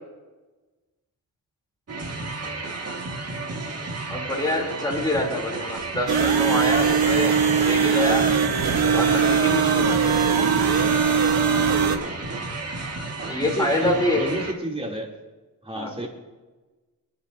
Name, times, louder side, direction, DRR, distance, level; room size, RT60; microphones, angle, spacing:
sound 1, 1.9-14.5, right 3 dB, 45° right, 2.1 m, -33 dB
voice 1, 4.1-7.4 7.6-8.3 8.9-10.0 13.3-14.3 15.7-15.9, left 1 dB, 10° left, -2 dB, 3.5 m, -26 dB
sound 2, 6.1-12.0, right 6 dB, 90° right, 1.5 m, -20 dB
voice 2, 13.2-15.1 15.6-16.1, right 1 dB, 15° right, -3 dB, 3.2 m, -32 dB
24.5 x 10.0 x 2.8 m, 1.2 s
wide cardioid pair, 110°, 35 cm